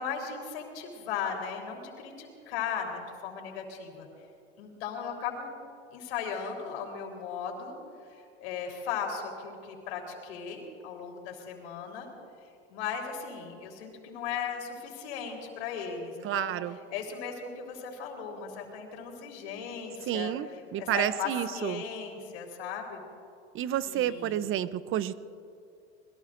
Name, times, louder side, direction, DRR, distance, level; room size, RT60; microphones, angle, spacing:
voice 1, 0.0-4.1 4.6-5.5 5.9-7.8 8.1-12.1 12.7-23.0 23.9-24.4, left 6 dB, 75° left, 1 dB, 3.9 m, -37 dB
voice 2, 16.2-16.8 20.1-20.5 20.7-21.8 23.5-25.2, right 11 dB, 40° right, 15 dB, 0.7 m, -30 dB
26.5 x 21.0 x 2.6 m, 2.4 s
hypercardioid pair, 95°, 33 cm